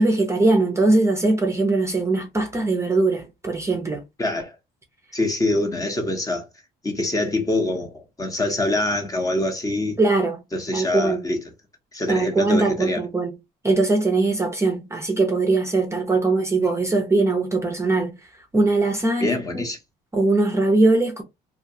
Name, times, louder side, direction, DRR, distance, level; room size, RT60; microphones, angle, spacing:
voice 1, 0.0-4.0 10.0-10.4 10.7-11.3 12.1-13.3 13.6-18.1 18.5-19.6 20.1-21.2, right 2 dB, 15° right, 0.5 m, -21 dB
voice 2, 4.2-4.5 5.1-6.4 6.8-10.0 10.5-11.4 11.9-13.0 19.2-19.8, left 2 dB, 20° left, 0.7 m, -24 dB
2.3 x 2.2 x 2.7 m
cardioid pair, 110°, 17 cm